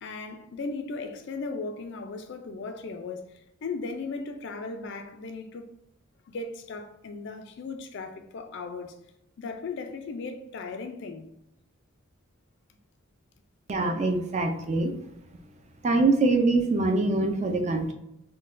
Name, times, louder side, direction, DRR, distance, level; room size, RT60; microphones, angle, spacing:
voice 1, 0.0-5.7 6.3-8.9 9.4-11.3, left 3 dB, 55° left, 0.3 m, -37 dB
voice 2, 13.7-14.9 15.8-17.9, right 3 dB, 30° right, 0.3 m, -24 dB
3.7 x 2.2 x 2.5 m
head